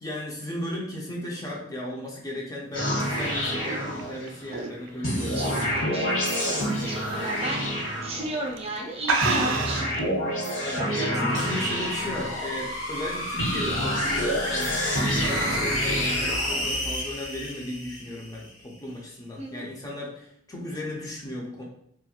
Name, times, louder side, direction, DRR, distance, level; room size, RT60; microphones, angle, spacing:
voice 1, 0.0-5.7 10.6-21.6, left 1 dB, 20° left, -2 dB, 0.4 m, -35 dB
sound 1, 2.7-4.5 5.0-8.6 9.2-12.8 13.4-16.9, equal, 75° left, 1.2 m, -28 dB
sound 2, 2.9-6.0 6.4-6.7 7.1-7.2 8.0-8.3 8.6-8.7 9.0-10.0, right 4 dB, 80° right, 0.4 m, -28 dB
voice 2, 5.3-6.1 6.8-7.7 8.0-9.8 11.0-11.1 19.4-19.7, right 1 dB, 30° right, 0 dB, 0.6 m, -33 dB
sound 3, 11.1-18.5, left 1 dB, 90° left, 0.9 m, -31 dB
3.0 x 2.3 x 2.8 m, 0.70 s
head